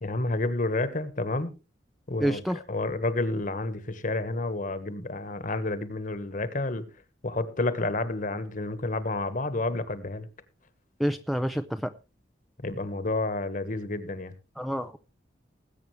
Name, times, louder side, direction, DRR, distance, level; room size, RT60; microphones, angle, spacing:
voice 1, 0.0-1.5 2.1-2.4 2.7-6.9 7.2-10.3 12.6-14.3, left 2 dB, 45° left, 1.4 m, -30 dB
voice 2, 2.2-2.6 11.0-11.9 14.6-15.0, equal, ahead, 0.5 m, -28 dB
20.0 x 8.5 x 3.3 m
head